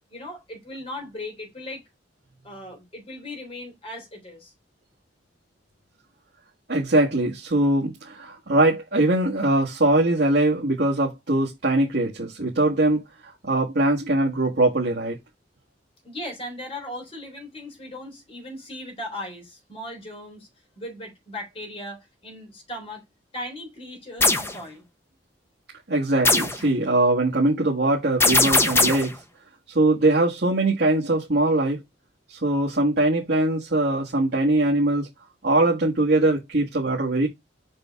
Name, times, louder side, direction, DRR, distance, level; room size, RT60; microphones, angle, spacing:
voice 1, 0.1-1.8 2.4-4.5 16.0-20.5 20.8-23.0 23.3-24.8, left 1 dB, 35° left, 3.6 m, -37 dB
voice 2, 6.7-15.2 25.9-29.1 29.7-31.8 32.3-35.1 35.4-37.3, right 2 dB, 65° right, 1.4 m, -22 dB
sound 1, 24.2-24.5 26.2-26.6 28.2-29.1, left 2 dB, 15° left, 0.9 m, -19 dB
5.6 x 5.1 x 3.5 m
head